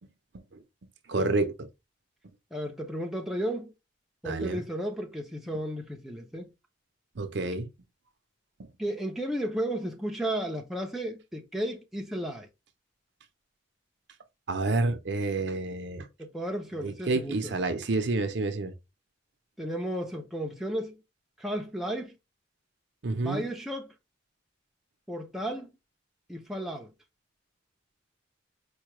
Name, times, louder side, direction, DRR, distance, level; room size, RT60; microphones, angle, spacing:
voice 1, 1.1-1.7 4.2-4.6 7.2-7.7 14.5-16.1 16.8-18.7 23.0-23.4, right 3 dB, 60° right, 0.6 m, -29 dB
voice 2, 2.5-3.7 4.2-6.5 8.8-12.5 16.2-17.6 19.6-21.0 21.4-22.2 23.1-23.9 25.1-25.7 26.3-26.9, equal, ahead, 0.5 m, -34 dB
4.6 x 2.2 x 3.0 m
head